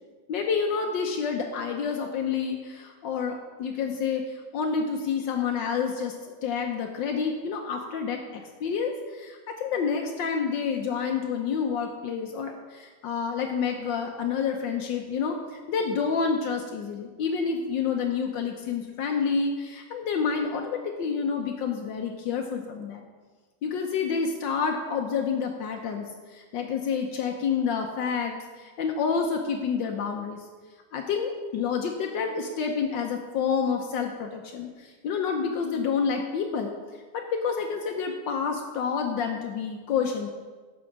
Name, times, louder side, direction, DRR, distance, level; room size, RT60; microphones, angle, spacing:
voice 1, 0.3-4.2 4.5-6.1 6.4-23.0 23.6-26.1 26.3-30.4 30.9-36.7 37.1-40.3, left 6 dB, 75° left, 3 dB, 1.5 m, -28 dB
11.0 x 4.8 x 7.3 m, 1.4 s
omnidirectional pair, 2.0 m